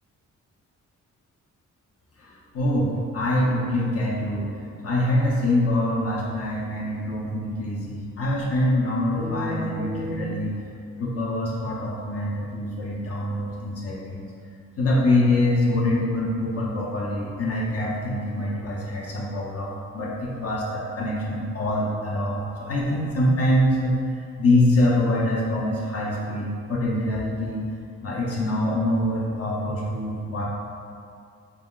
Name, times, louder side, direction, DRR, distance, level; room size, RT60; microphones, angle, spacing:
voice 1, 2.2-4.5 4.8-10.6 11.0-14.3 14.8-24.0 24.4-27.6 28.0-30.4, left 1 dB, 50° left, -4 dB, 0.6 m, -24 dB
4.8 x 2.3 x 3.7 m, 2.3 s
wide cardioid pair, 170°, 30 cm